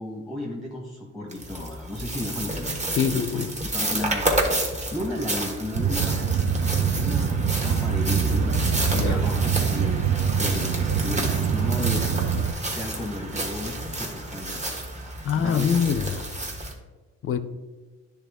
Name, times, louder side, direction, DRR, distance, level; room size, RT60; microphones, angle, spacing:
voice 1, 0.0-4.3 4.7-6.3 6.9-8.5 9.0-10.1 10.4-12.1 12.6-14.7 15.0-15.8, left 1 dB, ahead, -3 dB, 1.1 m, -34 dB
sound 1, 1.3-16.7, right 1 dB, 25° right, 1.4 m, -30 dB
voice 2, 3.0-3.5 8.9-9.3 15.2-16.2 17.2-17.4, left 7 dB, 45° left, 11 dB, 0.6 m, -24 dB
sound 2, 5.7-12.5, right 8 dB, 45° right, 0.5 m, -24 dB
9.9 x 3.5 x 3.5 m, 1.2 s
cardioid pair, 90°, 30 cm